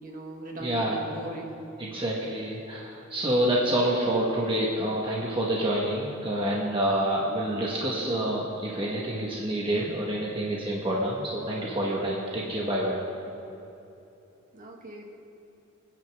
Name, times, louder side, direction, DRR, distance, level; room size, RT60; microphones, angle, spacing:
voice 1, 0.0-1.6 14.5-15.1, right 1 dB, 45° right, 0 dB, 1.8 m, -39 dB
voice 2, 0.6-1.0 1.8-13.0, right 1 dB, 25° right, -4 dB, 1.3 m, -27 dB
25.5 x 9.5 x 3.5 m, 2.9 s
head